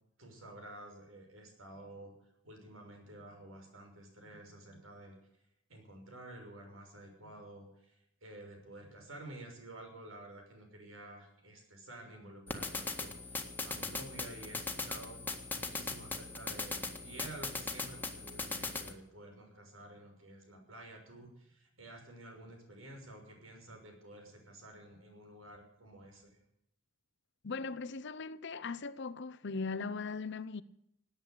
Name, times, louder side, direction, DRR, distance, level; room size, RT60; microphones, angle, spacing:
voice 1, 0.2-2.1 2.4-5.2 5.7-15.2 15.5-26.4, right 1 dB, 85° right, 6.3 m, -51 dB
sound 1, 12.5-18.9, left 3 dB, 10° left, 1.8 m, -39 dB
voice 2, 27.4-30.6, left 4 dB, 60° left, 0.8 m, -39 dB
18.0 x 9.3 x 8.4 m
head